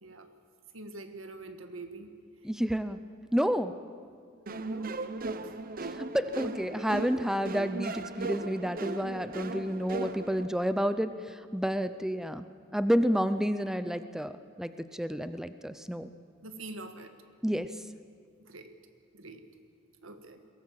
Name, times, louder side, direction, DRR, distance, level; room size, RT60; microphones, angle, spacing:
voice 1, 0.7-2.1 4.7-5.0 5.4-5.5 16.4-17.1 18.5-18.7 19.1-19.4 20.0-20.4, right 2 dB, 85° right, 8 dB, 1.7 m, -44 dB
voice 2, 2.4-3.0 3.3-3.8 6.0-12.5 12.7-14.3 14.6-16.1 17.4-17.7, equal, 5° right, 11 dB, 0.5 m, -30 dB
sound 1, 4.5-10.5, right 3 dB, 45° right, 0.8 m, -37 dB
21.5 x 18.0 x 7.5 m, 2.2 s
head